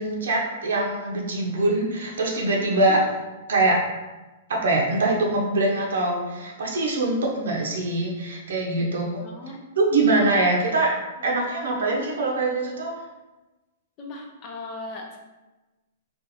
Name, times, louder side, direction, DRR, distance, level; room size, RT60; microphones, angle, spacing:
voice 1, 0.0-3.0 3.5-3.9 4.5-9.2 9.8-11.0 11.2-13.0, right 2 dB, 85° right, -1 dB, 0.6 m, -23 dB
voice 2, 2.6-3.0 8.8-8.9 9.2-9.6 11.2-11.3 14.0-15.2, left 2 dB, 30° left, 1 dB, 0.6 m, -38 dB
2.6 x 2.5 x 4.1 m, 1.1 s
hypercardioid pair, 150°, 0 cm